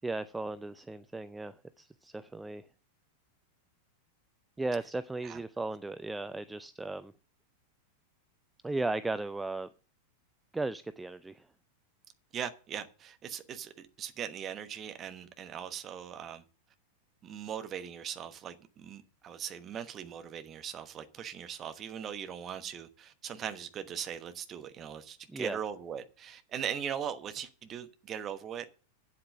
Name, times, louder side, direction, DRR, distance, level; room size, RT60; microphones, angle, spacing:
voice 1, 0.0-2.6 4.6-7.1 8.6-9.7 10.5-11.5 25.3-25.6, right 2 dB, 10° right, 0.4 m, -36 dB
voice 2, 12.3-16.4 17.2-28.7, right 8 dB, 30° right, 1.1 m, -40 dB
8.7 x 8.0 x 6.6 m
figure-of-eight pair, 90°, 0 cm